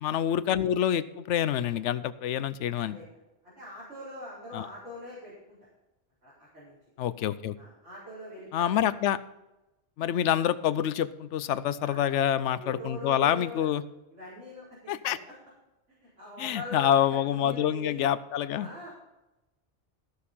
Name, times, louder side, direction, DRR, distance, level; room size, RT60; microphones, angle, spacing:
voice 1, 0.0-3.0 4.5-4.7 7.0-7.6 8.5-9.2 10.0-13.8 14.9-15.2 16.4-18.7, left 10 dB, 85° left, 15 dB, 0.9 m, -27 dB
voice 2, 2.7-3.0 3.4-5.6 6.2-6.8 7.6-8.8 11.8-12.2 12.6-13.7 14.1-15.3 15.9-18.0 18.6-18.9, left 1 dB, 85° right, -10 dB, 4.8 m, -43 dB
14.5 x 6.6 x 5.5 m, 0.98 s
omnidirectional pair, 1.2 m